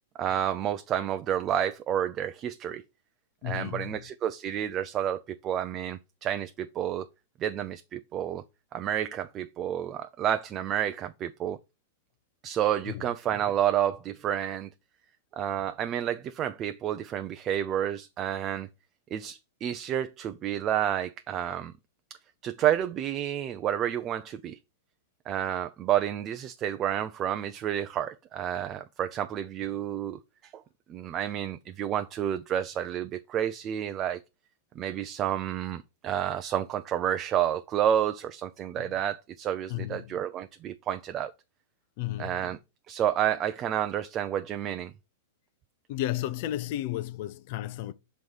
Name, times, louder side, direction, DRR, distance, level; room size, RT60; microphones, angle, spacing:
voice 1, 0.2-2.8 3.4-7.1 7.4-8.4 8.7-11.6 12.4-14.7 15.3-18.7 19.1-21.7 22.4-24.6 25.3-30.5 30.9-34.2 34.8-41.3 42.2-42.6 42.9-44.9, right 10 dB, 30° right, 0.4 m, -30 dB
voice 2, 3.4-4.0 12.9-13.0 38.8-38.9 39.7-40.2 42.0-42.5 45.9-47.9, left 14 dB, 55° left, 0.5 m, -33 dB
6.2 x 3.1 x 5.4 m
hypercardioid pair, 110°, 0 cm